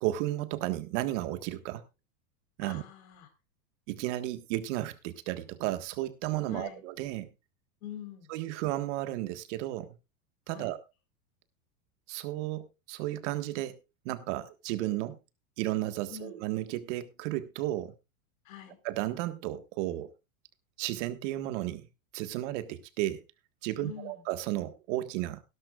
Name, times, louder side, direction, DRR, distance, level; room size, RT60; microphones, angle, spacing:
voice 1, 0.0-1.8 2.6-2.8 3.9-7.3 8.3-9.9 10.5-10.8 12.1-13.8 14.0-15.2 15.6-17.9 18.8-20.1 20.8-21.9 22.1-23.2 23.6-25.4, right 15 dB, 60° right, 1.6 m, -33 dB
voice 2, 2.6-3.3 6.5-6.9 7.8-8.3 10.5-10.8 16.1-16.4 18.4-18.8 23.8-24.3, left 9 dB, 70° left, 4.2 m, -45 dB
17.5 x 11.5 x 2.4 m
supercardioid pair, 135°, 42 cm